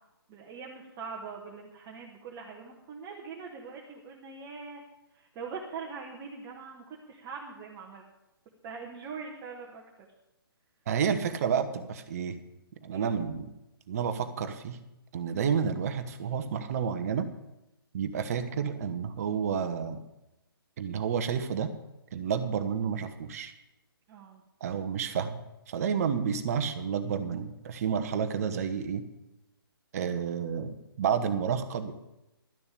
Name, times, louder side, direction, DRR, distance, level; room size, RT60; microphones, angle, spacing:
voice 1, 0.3-4.8 5.1-8.0 8.6-9.8 12.9-13.1 24.1-24.4, right 5 dB, 20° right, -1 dB, 1.5 m, -42 dB
voice 2, 10.9-12.4 12.8-13.5 13.9-14.8 15.1-17.3 17.9-20.0 20.8-21.7 22.1-23.5 24.6-29.0 29.9-31.9, right 7 dB, 40° right, 8 dB, 1.1 m, -30 dB
12.0 x 6.9 x 8.5 m, 0.95 s
figure-of-eight pair, 135°, 13 cm